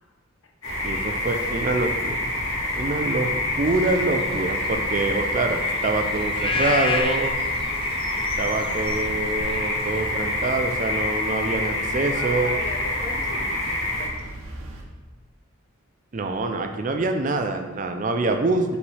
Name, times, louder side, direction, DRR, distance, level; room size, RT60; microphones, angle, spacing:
sound 1, 0.6-14.1, left 2 dB, 85° left, 1.8 m, -27 dB
sound 2, 0.7-14.8, right 1 dB, 90° right, 0.9 m, -39 dB
voice 1, 0.8-2.3 2.8-7.3 8.2-12.5 16.1-18.8, right 2 dB, 40° right, 6 dB, 0.4 m, -25 dB
sound 3, 3.8-10.6, left 4 dB, 25° left, 0.4 m, -32 dB
voice 2, 12.1-14.3, left 2 dB, 65° left, 3 dB, 0.8 m, -38 dB
5.6 x 5.4 x 3.3 m, 1.2 s
head